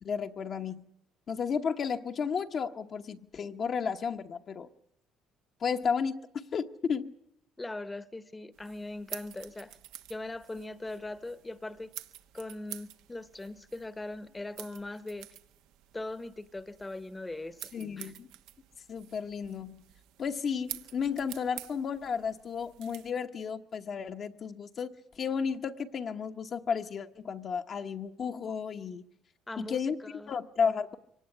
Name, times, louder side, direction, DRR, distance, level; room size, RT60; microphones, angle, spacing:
voice 1, 0.0-0.8 1.3-4.7 5.6-7.1 17.7-18.3 18.9-19.8 20.2-29.0 29.6-30.0 30.3-31.0, left 6 dB, 40° left, 6 dB, 1.1 m, -33 dB
voice 2, 7.6-9.8 10.1-11.9 12.3-15.3 15.9-17.6 18.0-18.1 29.5-29.9 30.1-30.4, left 2 dB, 15° left, 14 dB, 1.1 m, -40 dB
sound 1, 8.5-23.1, right 13 dB, 90° right, 1.3 m, -49 dB
24.0 x 18.5 x 9.9 m, 0.74 s
cardioid pair, 125°, 0 cm